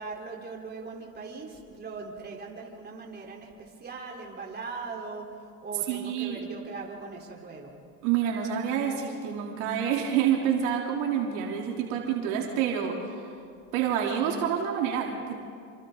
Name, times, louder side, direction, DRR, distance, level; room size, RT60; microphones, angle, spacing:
voice 1, 0.0-7.7, right 4 dB, 25° right, -1 dB, 4.0 m, -40 dB
voice 2, 5.9-6.4 8.0-13.3 13.7-15.4, right 8 dB, 75° right, -1 dB, 3.6 m, -28 dB
28.0 x 26.0 x 4.0 m, 2.3 s
supercardioid pair, 100°, 39 cm